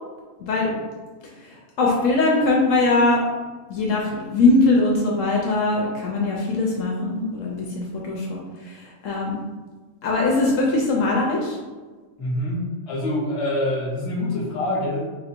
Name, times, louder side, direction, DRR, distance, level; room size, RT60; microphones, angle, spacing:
voice 1, 0.4-0.7 1.4-3.2 3.7-9.4 10.0-11.6, left 2 dB, 70° left, -2 dB, 0.9 m, -21 dB
voice 2, 12.2-15.0, left 1 dB, 25° left, -4 dB, 0.9 m, -25 dB
3.4 x 2.5 x 4.3 m, 1.3 s
omnidirectional pair, 1.5 m